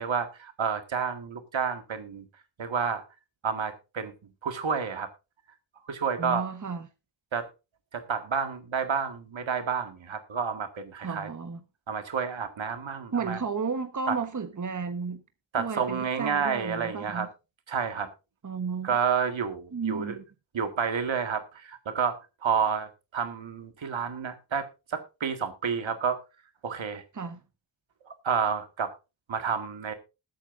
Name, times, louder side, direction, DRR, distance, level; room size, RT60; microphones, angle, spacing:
voice 1, 0.0-2.2 2.6-3.0 3.4-4.1 4.4-5.1 5.9-6.4 7.3-7.5 7.9-11.3 11.9-13.4 14.1-14.2 15.5-17.3 17.7-18.1 18.8-20.2 20.5-26.2 26.6-27.0 28.1-28.9 29.3-29.9, right 6 dB, 80° right, 1.9 m, -30 dB
voice 2, 6.2-6.9 11.0-11.6 13.1-15.2 15.6-17.3 18.4-19.0 19.7-20.2 27.1-27.4, right 5 dB, 40° right, 1.3 m, -33 dB
20.5 x 8.9 x 2.6 m
wide cardioid pair, 105°, 45 cm